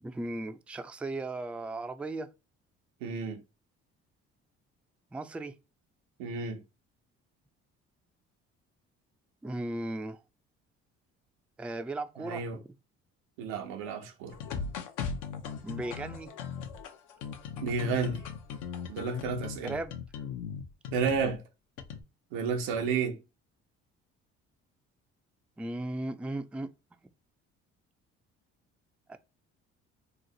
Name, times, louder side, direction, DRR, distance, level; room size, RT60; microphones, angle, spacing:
voice 1, 0.0-2.3 5.1-5.5 9.4-10.2 11.6-12.7 15.6-16.3 19.6-20.0 25.6-26.7 29.1-29.2, right 2 dB, 5° right, 0.3 m, -36 dB
voice 2, 3.0-3.4 6.2-6.6 12.2-12.6 13.4-14.4 17.6-18.2 18.9-19.8 20.9-21.4 22.3-23.2, right 5 dB, 90° right, 0.7 m, -31 dB
sound 1, 14.3-21.3 21.8-22.0, left 6 dB, 75° left, 0.7 m, -38 dB
3.0 x 2.1 x 3.8 m
supercardioid pair, 70°, 31 cm